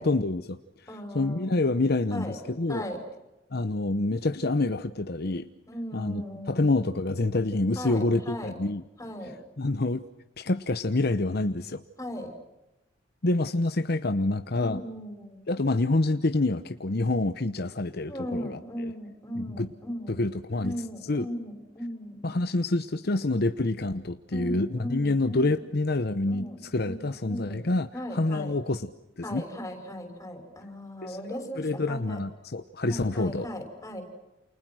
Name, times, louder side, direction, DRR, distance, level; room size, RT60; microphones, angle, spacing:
voice 1, 0.0-0.9 1.1-2.8 3.5-5.5 5.9-8.8 9.6-10.0 10.4-11.8 13.2-14.8 15.5-18.9 19.4-19.7 20.1-20.7 21.1-21.3 22.2-28.9 29.2-29.4 31.0-33.5, left 2 dB, 55° left, 9 dB, 0.9 m, -27 dB
voice 2, 0.9-1.6 2.1-2.4 2.7-3.0 5.7-6.6 7.8-8.6 9.0-9.4 12.0-12.3 14.6-15.5 18.1-20.3 20.6-22.3 24.3-25.5 26.3-28.5 29.2-32.2 32.9-34.0, equal, 15° left, 5 dB, 6.0 m, -37 dB
29.0 x 29.0 x 6.3 m, 0.97 s
head